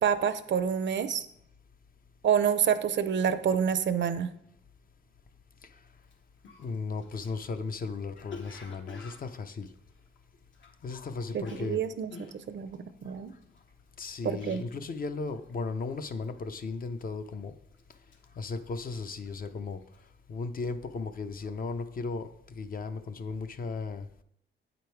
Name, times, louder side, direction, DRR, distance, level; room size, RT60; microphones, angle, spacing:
voice 1, 0.0-1.3 2.2-4.3 11.3-13.3 14.2-14.6, right 8 dB, 60° right, 11 dB, 0.6 m, -28 dB
Cough, 6.0-6.1 6.4-10.9 11.2-15.0 15.3-15.6 15.9-16.4 16.9-17.4 17.7-19.4 19.7-20.1, left 4 dB, 65° left, 1.1 m, -49 dB
voice 2, 6.6-9.7 10.8-11.8 14.0-17.5 18.4-19.8 20.3-24.1, left 4 dB, 45° left, 9 dB, 0.5 m, -36 dB
8.5 x 5.1 x 4.5 m, 0.74 s
cardioid pair, 120°, 21 cm